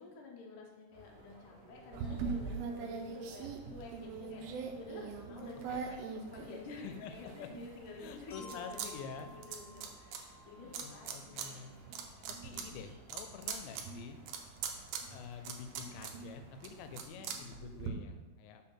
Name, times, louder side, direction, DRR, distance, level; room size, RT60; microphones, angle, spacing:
voice 1, 0.0-4.4 4.8-9.0 9.3-12.0, left 3 dB, 70° left, -2 dB, 2.0 m, -51 dB
sound 1, 0.9-17.0, right 2 dB, 60° right, 2.9 m, -58 dB
sound 2, 1.9-7.0 7.5-8.9 9.1-10.2 10.7-11.5 11.8-17.9, right 6 dB, 85° right, 2.2 m, -41 dB
voice 2, 5.2-5.9 6.8-7.1 7.4-7.5 8.0-9.3 10.6-11.8 12.3-14.2 15.1-18.6, left 7 dB, 90° left, 8 dB, 2.9 m, -48 dB
Glockenspiel, 8.3-12.3, equal, 10° left, 0.8 m, -56 dB
6.2 x 4.2 x 5.7 m, 1.2 s
omnidirectional pair, 5.1 m